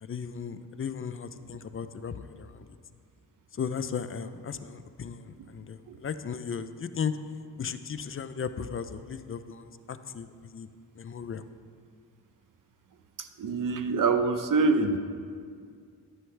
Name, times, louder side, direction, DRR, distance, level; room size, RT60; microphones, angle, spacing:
voice 1, 0.0-2.7 3.5-7.2 7.6-10.7 11.0-11.4, left 6 dB, 35° left, 11 dB, 0.4 m, -36 dB
voice 2, 13.2-15.0, right 4 dB, 50° right, 9 dB, 0.7 m, -26 dB
11.0 x 9.3 x 3.3 m, 2.1 s
cardioid pair, 95°, 41 cm